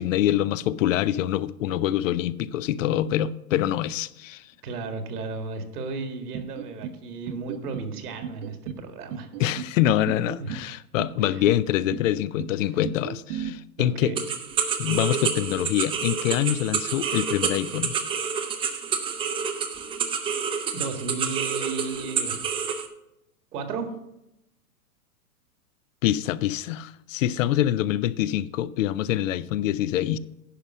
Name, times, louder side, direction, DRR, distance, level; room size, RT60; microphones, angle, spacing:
voice 1, 0.0-4.5 9.4-14.1 14.8-17.9 26.0-30.2, left 12 dB, 60° left, 0.6 m, -25 dB
voice 2, 4.6-9.3 10.4-10.5 11.2-11.4 12.6-12.7 13.8-14.2 20.7-22.4 23.5-23.9, right 4 dB, 80° right, 1.9 m, -34 dB
sound 1, 6.3-7.0 7.3-7.9 8.2-8.8 9.1-9.7 10.1-10.7 11.0-11.6 11.9-12.5 12.8-13.5, right 8 dB, 50° right, 0.9 m, -35 dB
sound 2, 14.1-22.9, right 6 dB, 10° right, 0.5 m, -28 dB
10.0 x 5.4 x 6.1 m
hypercardioid pair, 135°, 45 cm